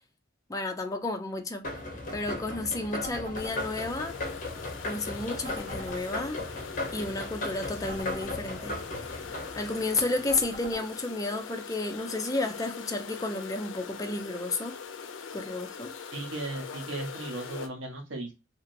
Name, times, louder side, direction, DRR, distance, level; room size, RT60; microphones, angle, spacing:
voice 1, 0.5-1.7 2.1-4.1 4.8-6.4 6.9-8.7 9.6-14.8 15.3-15.9, left 2 dB, 20° left, 0.5 m, -32 dB
sound 1, 1.6-10.7, left 2 dB, 45° left, 0.8 m, -37 dB
sound 2, 3.0-3.6 5.4-6.0 7.9-8.4 10.3-10.8, left 1 dB, 50° right, 1.4 m, -42 dB
sound 3, 3.3-17.7, left 6 dB, 80° left, 0.4 m, -42 dB
voice 2, 16.1-18.3, right 2 dB, 70° right, 0.8 m, -36 dB
2.9 x 2.7 x 2.5 m
head